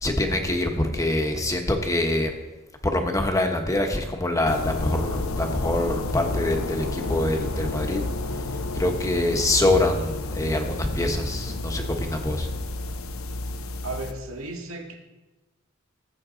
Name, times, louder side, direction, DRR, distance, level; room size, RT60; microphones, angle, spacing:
voice 1, 0.0-2.3 2.8-8.0 8.4-12.5, left 1 dB, 15° left, 3 dB, 1.2 m, -25 dB
sound 1, 4.5-14.1, left 2 dB, 90° left, 0.8 m, -31 dB
voice 2, 13.8-14.9, right 2 dB, 80° right, 2 dB, 2.0 m, -34 dB
18.5 x 8.1 x 3.9 m, 1.1 s
head